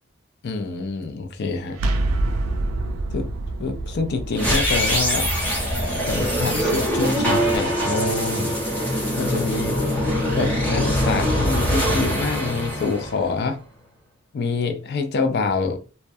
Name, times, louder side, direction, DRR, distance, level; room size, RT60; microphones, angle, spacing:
voice 1, 0.4-1.8 3.1-3.3 3.6-5.3 6.1-8.6 9.1-9.8 10.3-13.6 14.3-15.8, left 4 dB, 55° left, 0.4 m, -26 dB
sound 1, 1.7-7.5, right 2 dB, 85° right, 0.4 m, -28 dB
sound 2, 4.3-13.6, equal, 10° left, 0.8 m, -23 dB
2.3 x 2.1 x 2.6 m
head